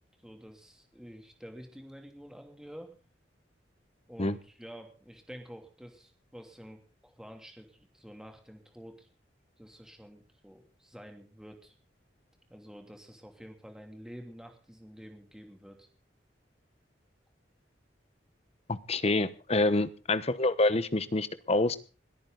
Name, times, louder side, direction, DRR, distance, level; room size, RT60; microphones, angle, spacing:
voice 1, 0.2-3.0 4.1-9.1 9.6-11.8 12.5-15.9, equal, 5° right, 4 dB, 2.9 m, -49 dB
voice 2, 18.7-21.8, left 2 dB, 35° left, 14 dB, 1.0 m, -27 dB
21.5 x 14.0 x 4.0 m, 0.36 s
head